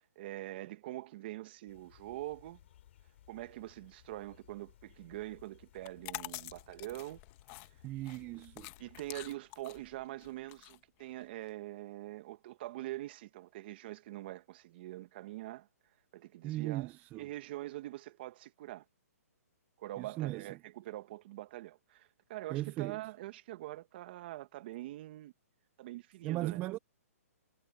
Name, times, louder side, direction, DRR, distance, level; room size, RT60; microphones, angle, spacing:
voice 1, 0.0-2.6 3.3-7.2 8.8-15.7 16.1-16.9 17.1-18.8 19.8-25.3 25.8-26.6, right 16 dB, 40° right, 1.6 m, -44 dB
sound 1, 1.7-9.4, left 12 dB, 50° left, 2.9 m, -62 dB
sound 2, 5.7-11.5, left 22 dB, 25° left, 1.1 m, -47 dB
voice 2, 7.8-8.7 16.4-17.3 20.0-20.5 22.5-23.0 26.2-26.8, right 16 dB, 20° right, 0.6 m, -37 dB
hypercardioid pair, 155°, 8 cm